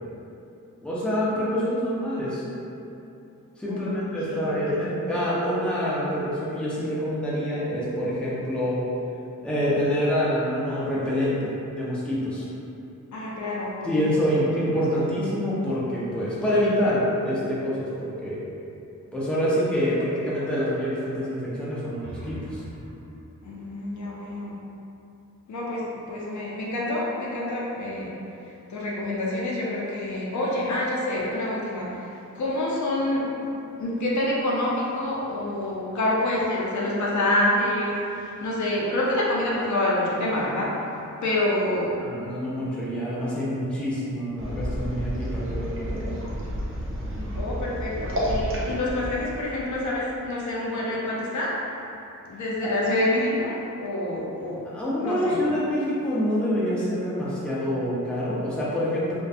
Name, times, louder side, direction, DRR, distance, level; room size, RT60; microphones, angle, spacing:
voice 1, 0.8-2.4 3.6-8.8 9.4-12.5 13.8-18.4 19.1-22.6 42.0-46.1 52.6-52.7 54.7-59.2, equal, 5° left, -9 dB, 0.5 m, -26 dB
voice 2, 3.7-4.9 13.1-14.2 23.4-24.6 25.5-28.1 28.7-33.5 33.8-42.0 47.4-51.9 52.3-54.6 55.0-55.5, left 1 dB, 65° left, -5 dB, 0.5 m, -27 dB
sound 1, 22.0-25.1, right 1 dB, 75° right, 0.9 m, -44 dB
sound 2, 44.4-50.2, equal, 40° right, 0.5 m, -31 dB
2.5 x 2.2 x 2.4 m, 2.8 s
wide cardioid pair, 95°, 32 cm